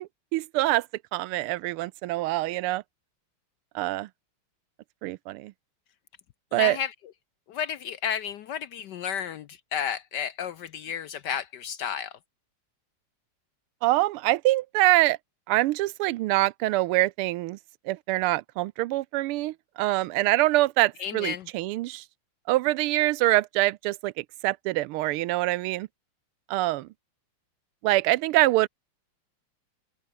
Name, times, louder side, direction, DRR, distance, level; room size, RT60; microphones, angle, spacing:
voice 1, 0.3-0.9 1.1-2.8 3.7-4.1 5.0-5.5 6.5-6.8 13.8-15.2 15.5-17.6 17.9-22.0 22.5-25.9 26.5-26.9 27.8-28.7, right 17 dB, 85° right, 1.5 m, -25 dB
voice 2, 6.5-6.9 7.5-12.2 21.0-21.5, left 8 dB, 70° left, 1.1 m, -32 dB
open air
omnidirectional pair, 2.4 m